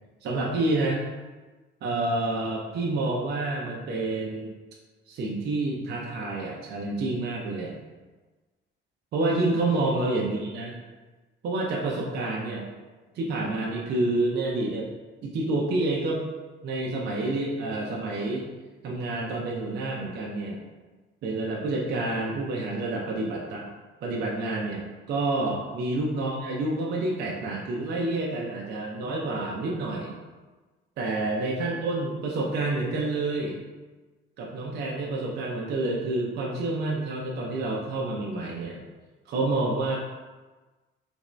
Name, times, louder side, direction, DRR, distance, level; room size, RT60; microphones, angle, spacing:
voice 1, 0.2-1.0 1.8-4.5 5.1-7.8 9.1-10.7 11.4-12.7 13.1-14.9 15.2-16.2 16.6-18.4 18.8-20.6 21.2-23.7 24.0-30.1 31.0-33.6 34.4-38.8 39.3-40.0, right 2 dB, 55° right, -2 dB, 0.5 m, -28 dB
3.4 x 2.5 x 3.1 m, 1.3 s
cardioid pair, 150°, 21 cm